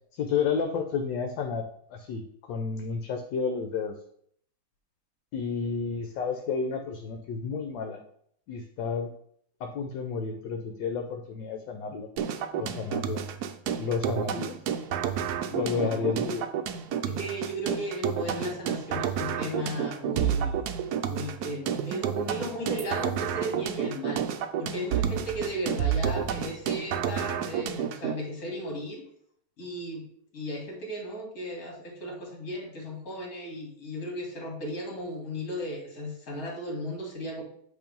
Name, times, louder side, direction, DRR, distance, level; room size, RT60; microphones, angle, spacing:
voice 1, 0.1-1.6 1.9-4.0 5.3-8.0 8.5-9.1 9.6-12.1 12.6-13.2 13.8-14.6 15.6-16.5, left 5 dB, 70° left, 4 dB, 1.3 m, -31 dB
sound 1, 12.2-28.2, right 8 dB, 80° right, 0.9 m, -30 dB
voice 2, 12.5-13.0 15.5-16.2 17.1-20.6 20.9-24.2 24.6-29.0 29.6-30.1 30.3-37.4, equal, 45° left, 0 dB, 2.3 m, -35 dB
8.4 x 3.1 x 5.3 m, 0.65 s
omnidirectional pair, 2.2 m